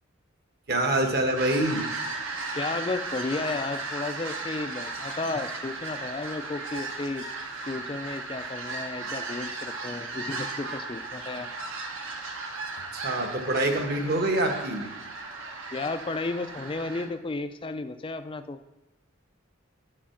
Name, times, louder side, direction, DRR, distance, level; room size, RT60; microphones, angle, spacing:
voice 1, 0.7-1.8 12.9-14.9, right 1 dB, 50° right, 4 dB, 1.2 m, -25 dB
sound 1, 1.4-17.1, right 3 dB, 75° right, 1.3 m, -36 dB
voice 2, 2.5-7.3 7.6-11.5 15.7-18.6, left 3 dB, 25° left, 9 dB, 0.4 m, -33 dB
10.0 x 4.4 x 5.8 m, 1.0 s
head